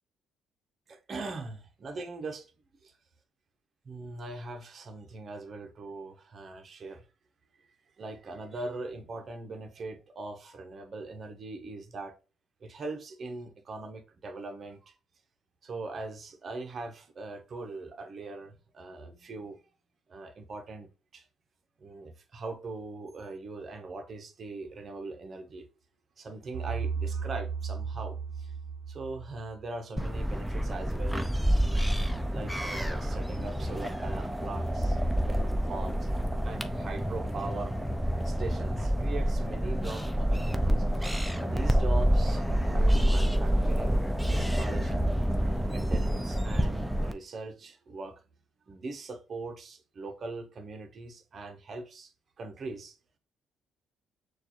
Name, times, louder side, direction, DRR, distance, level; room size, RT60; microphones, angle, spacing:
voice 1, 0.9-2.5 3.8-7.0 8.0-12.2 12.6-14.9 15.6-19.6 20.1-21.2 21.8-25.7 26.2-28.5 28.9-31.3 32.3-36.1 36.4-37.8 38.2-44.0 44.3-45.1 45.7-48.2 48.7-52.1 52.4-53.0, right 3 dB, 40° right, 0.8 m, -41 dB
sound 1, 26.5-29.7, right 6 dB, 80° right, 0.5 m, -35 dB
sound 2, 30.0-47.1, equal, ahead, 0.4 m, -28 dB
6.4 x 2.4 x 2.9 m
cardioid pair, 135°, 0 cm